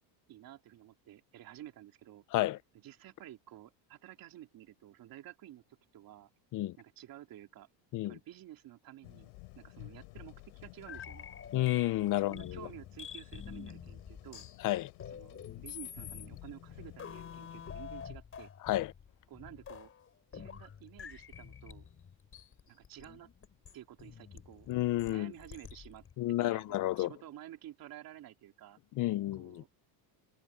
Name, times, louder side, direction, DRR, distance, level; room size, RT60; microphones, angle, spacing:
voice 1, 0.3-2.2 2.7-5.6 5.9-6.3 6.8-7.7 8.0-11.3 12.0-14.4 15.1-18.5 19.3-19.9 20.3-21.9 22.7-23.3 23.7-24.7 25.1-26.0 26.4-28.8 29.3-29.7, right 13 dB, 45° right, 3.1 m, -52 dB
sound 1, 9.0-17.8, left 26 dB, 85° left, 3.5 m, -53 dB
sound 2, 10.9-26.1, left 7 dB, 25° left, 5.2 m, -48 dB
voice 2, 11.5-12.6 14.6-14.9 18.6-18.9 24.7-25.3 26.2-27.1 29.0-29.6, left 16 dB, 45° left, 0.6 m, -31 dB
cardioid pair, 150°, 47 cm